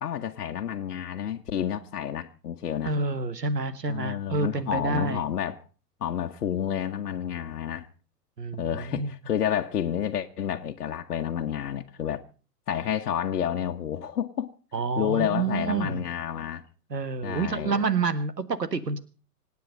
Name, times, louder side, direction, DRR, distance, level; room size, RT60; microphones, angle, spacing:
voice 1, 0.0-2.9 3.9-5.6 6.0-7.9 8.6-12.2 12.7-14.5 15.0-16.6 17.2-17.8, left 9 dB, 70° left, 1.4 m, -30 dB
voice 2, 2.8-5.2 8.4-9.1 14.7-16.0 16.9-19.0, right 4 dB, 90° right, 1.7 m, -28 dB
26.0 x 9.3 x 5.2 m
figure-of-eight pair, 110°, 48 cm